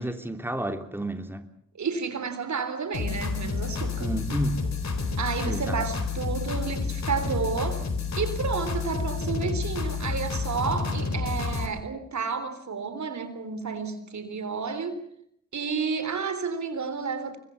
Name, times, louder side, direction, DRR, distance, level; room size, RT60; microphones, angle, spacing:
voice 1, 0.0-1.5 4.0-4.7 5.4-5.8, right 1 dB, 5° right, 3.0 m, -31 dB
voice 2, 1.8-4.1 5.2-7.8 8.2-15.0 15.5-17.4, right 5 dB, 70° right, 3.7 m, -31 dB
sound 1, 2.9-11.7, left 4 dB, 65° left, 4.2 m, -30 dB
24.5 x 21.0 x 7.0 m
cardioid pair, 45°, 30 cm